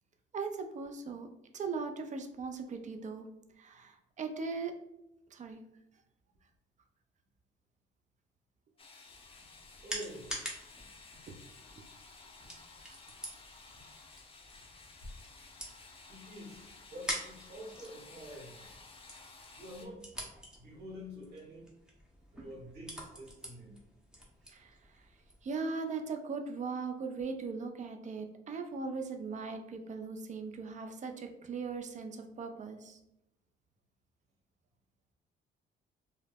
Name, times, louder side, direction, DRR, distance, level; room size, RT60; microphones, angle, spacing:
voice 1, 0.3-1.3 1.5-3.2 3.6-4.7 5.3-5.6 11.3-11.4 11.8-11.9 24.5-24.7 25.4-33.0, right 4 dB, 40° right, 6 dB, 0.4 m, -39 dB
sound 1, 8.8-19.9, left 3 dB, 30° left, 0.4 m, -54 dB
sound 2, 9.1-25.5, equal, 5° right, 0.7 m, -47 dB
voice 2, 9.8-10.4 16.1-18.6 19.5-20.1 20.6-21.7 22.3-23.8, equal, 55° right, -4 dB, 1.0 m, -47 dB
2.3 x 2.0 x 3.3 m, 0.87 s
cardioid pair, 90°, 20 cm